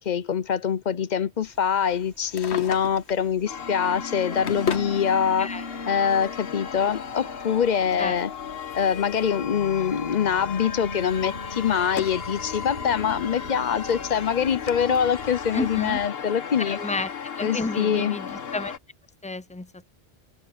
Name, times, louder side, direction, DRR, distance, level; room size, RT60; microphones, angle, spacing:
voice 1, 0.1-5.5 5.9-8.3 8.7-16.8 17.4-18.2, left 7 dB, 50° left, 0.7 m, -24 dB
sound 1, 1.4-16.1, equal, 80° right, 5.3 m, -48 dB
Drawer open or close, 2.1-3.3 4.0-5.0 6.0-6.1 7.9-9.5 9.7-10.1 10.6-12.3 12.7-12.8 13.6-13.7 13.9-14.0 14.7-14.8, left 7 dB, 85° left, 1.3 m, -35 dB
sound 2, 3.5-18.8, left 6 dB, 65° left, 1.3 m, -35 dB
voice 2, 15.5-16.0 16.7-17.1 17.4-18.8 19.2-19.9, left 3 dB, 10° left, 0.4 m, -31 dB
open air
omnidirectional pair, 1.1 m